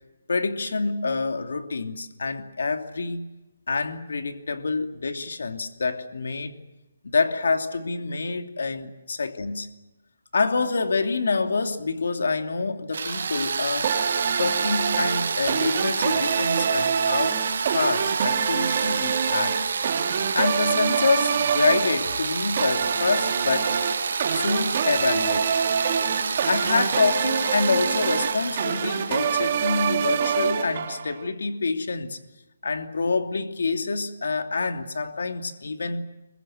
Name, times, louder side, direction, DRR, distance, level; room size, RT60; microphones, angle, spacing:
voice 1, 0.3-3.3 3.7-6.5 7.0-9.7 10.3-13.9 14.4-17.4 17.7-19.6 20.3-23.8 24.3-25.6 26.4-32.2 32.6-36.0, left 4 dB, 75° left, 2.8 m, -26 dB
sound 1, 12.9-30.6, right 5 dB, 55° right, 1.3 m, -29 dB
sound 2, 13.8-31.3, right 7 dB, 30° right, 2.7 m, -26 dB
26.5 x 23.0 x 7.8 m
hypercardioid pair, 175°, 0 cm